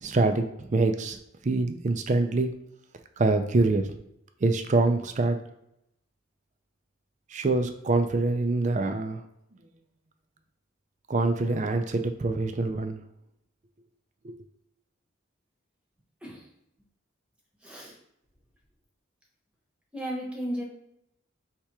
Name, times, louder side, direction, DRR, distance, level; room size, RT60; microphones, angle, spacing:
voice 1, 0.0-1.2 1.4-2.5 3.2-3.9 4.4-5.4 7.3-9.2 11.1-13.0 14.2-14.3, right 3 dB, 35° right, 7 dB, 0.4 m, -25 dB
voice 2, 17.6-18.0 19.9-20.6, equal, 5° right, -2 dB, 0.9 m, -34 dB
3.4 x 2.9 x 4.7 m, 0.79 s
head